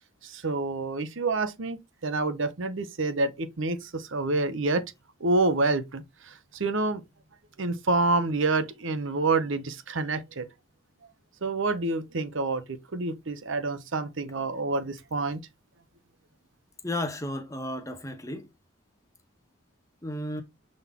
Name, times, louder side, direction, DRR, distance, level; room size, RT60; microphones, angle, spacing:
voice 1, 0.2-4.8 5.2-7.0 7.6-10.5 11.4-15.4, right 3 dB, 65° right, 0.9 m, -28 dB
voice 2, 16.8-18.5 20.0-20.4, left 1 dB, 15° left, 1.0 m, -33 dB
7.1 x 4.0 x 3.6 m
head